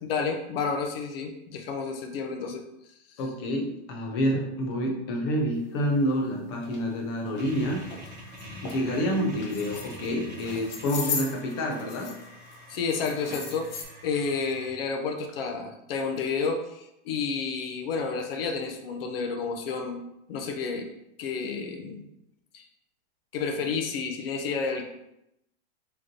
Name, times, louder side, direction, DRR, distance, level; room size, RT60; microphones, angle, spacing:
voice 1, 0.0-2.6 12.7-13.7 14.0-20.0 20.3-20.9 21.2-22.1 22.5-22.6 23.3-24.8, left 5 dB, 60° left, 4 dB, 0.7 m, -30 dB
voice 2, 3.2-7.8 8.6-12.1, equal, 25° left, 1 dB, 0.4 m, -28 dB
sound 1, 6.0-6.1 6.6-6.8 7.3-7.4 7.9-8.1 8.4-8.8 9.4-10.1 10.4-12.3 12.5-13.8, left 5 dB, 80° left, 1.0 m, -36 dB
sound 2, 7.3-14.7, equal, 10° right, 1.1 m, -45 dB
5.0 x 3.1 x 2.8 m, 0.83 s
supercardioid pair, 175°, 34 cm